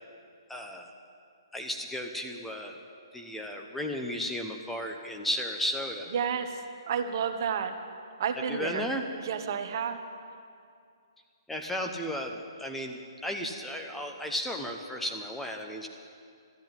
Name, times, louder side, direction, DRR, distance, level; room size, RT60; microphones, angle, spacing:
voice 1, 0.5-0.9 1.5-2.8 3.1-6.1 8.5-9.0 11.5-15.9, equal, 5° left, 3 dB, 0.9 m, -34 dB
voice 2, 6.1-7.7 8.2-8.9 9.2-10.0, right 7 dB, 50° right, 7 dB, 1.2 m, -31 dB
13.5 x 10.5 x 9.0 m, 2.3 s
hypercardioid pair, 140°, 3 cm